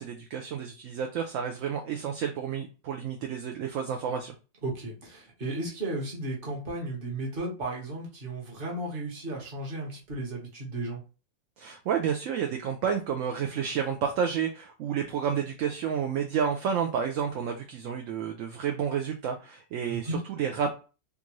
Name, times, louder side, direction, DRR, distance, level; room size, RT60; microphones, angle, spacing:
voice 1, 0.0-4.3 11.6-20.7, right 7 dB, 65° right, 4 dB, 0.8 m, -30 dB
voice 2, 4.6-11.0 19.9-20.2, right 2 dB, 40° right, -2 dB, 1.2 m, -34 dB
3.6 x 2.6 x 3.0 m, 0.33 s
omnidirectional pair, 1.6 m